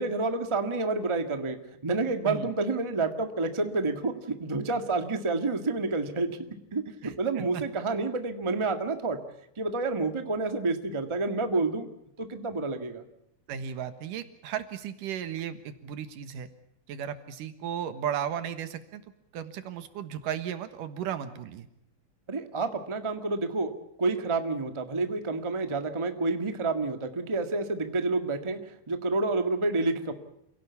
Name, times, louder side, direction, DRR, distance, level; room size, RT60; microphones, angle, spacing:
voice 1, 0.0-6.4 6.7-9.2 9.6-11.9 12.2-13.0 22.3-23.7 24.0-30.1, right 3 dB, 20° right, 7 dB, 0.9 m, -29 dB
voice 2, 7.0-7.6 13.5-16.5 16.9-19.0 19.3-21.7, right 9 dB, 85° right, 10 dB, 3.0 m, -35 dB
28.0 x 17.5 x 8.4 m, 0.79 s
omnidirectional pair, 3.7 m